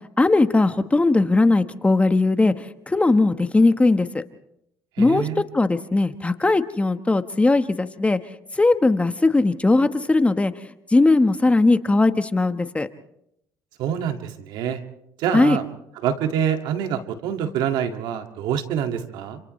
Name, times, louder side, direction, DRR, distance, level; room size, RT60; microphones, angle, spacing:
voice 1, 0.2-2.5 2.9-4.2 5.0-5.3 5.5-8.2 8.6-10.5 10.9-12.9 15.3-15.6, left 2 dB, 15° left, 10 dB, 1.3 m, -19 dB
voice 2, 5.0-5.4 13.8-14.8 15.2-15.6 16.0-19.4, right 9 dB, 75° right, 5 dB, 2.2 m, -26 dB
30.0 x 27.5 x 3.3 m, 0.79 s
supercardioid pair, 80°, 8 cm